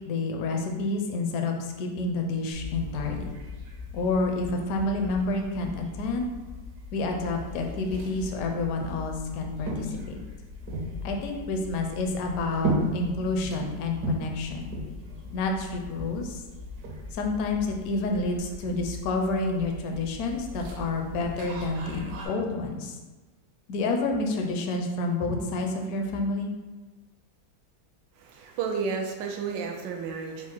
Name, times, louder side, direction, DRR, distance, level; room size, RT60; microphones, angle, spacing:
voice 1, 0.1-3.3 3.9-6.3 6.9-10.2 11.0-14.7 15.3-16.4 17.1-23.0 23.7-26.5, left 2 dB, 70° left, 2 dB, 0.9 m, -29 dB
sound 1, 2.5-22.3, equal, 65° right, 1.3 m, -37 dB
voice 2, 28.2-30.5, right 5 dB, 90° right, 2 dB, 1.3 m, -32 dB
4.4 x 2.0 x 4.5 m, 1.2 s
omnidirectional pair, 1.9 m